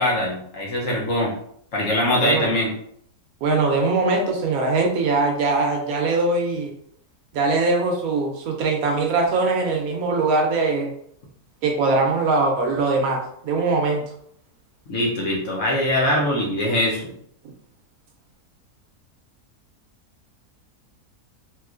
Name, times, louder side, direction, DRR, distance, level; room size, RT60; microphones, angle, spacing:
voice 1, 0.0-1.3 1.7-2.7 14.9-17.1, left 1 dB, 60° left, -3 dB, 1.0 m, -22 dB
voice 2, 2.2-2.5 3.4-6.7 7.3-10.9 11.6-14.0, right 3 dB, 70° right, 2 dB, 1.0 m, -21 dB
3.0 x 3.0 x 2.4 m, 0.68 s
omnidirectional pair, 1.7 m